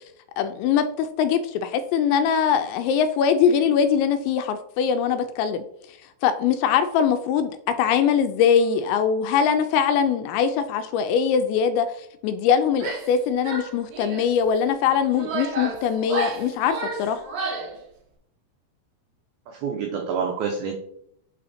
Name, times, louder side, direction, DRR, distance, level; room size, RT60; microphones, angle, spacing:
voice 1, 0.4-5.6 6.2-7.5 7.8-17.2, left 7 dB, 85° left, 9 dB, 2.6 m, -22 dB
Female speech woman speaking / Yell, 12.7-13.2 13.4-14.3 14.9-17.8, right 2 dB, 65° right, 1.8 m, -31 dB
voice 2, 19.5-20.8, right 6 dB, 85° right, 3 dB, 2.1 m, -27 dB
8.7 x 4.3 x 4.1 m, 0.71 s
omnidirectional pair, 5.4 m